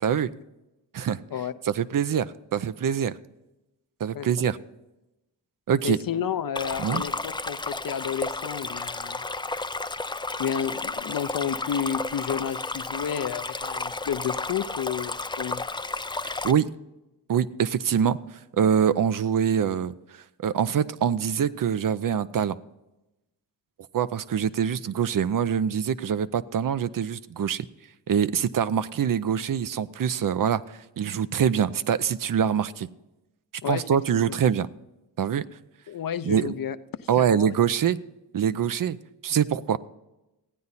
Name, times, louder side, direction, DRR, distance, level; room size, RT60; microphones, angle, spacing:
voice 1, 1.6-3.1 4.0-4.6 5.7-6.0 6.8-7.0 16.2-16.7 17.3-19.9 20.4-22.6 23.9-27.6 28.1-32.9 33.7-34.7 35.2-35.5 36.3-36.5 37.1-38.0 38.3-39.0 39.2-39.8, right 8 dB, 50° right, 16 dB, 0.6 m, -24 dB
voice 2, 5.8-9.2 10.4-15.6 33.6-33.8 34.1-34.3 35.9-37.6, left 8 dB, 50° left, 13 dB, 0.7 m, -31 dB
Stream, 6.6-16.5, left 3 dB, 10° left, 0.4 m, -32 dB
15.0 x 9.4 x 4.1 m, 0.95 s
cardioid pair, 55°, 44 cm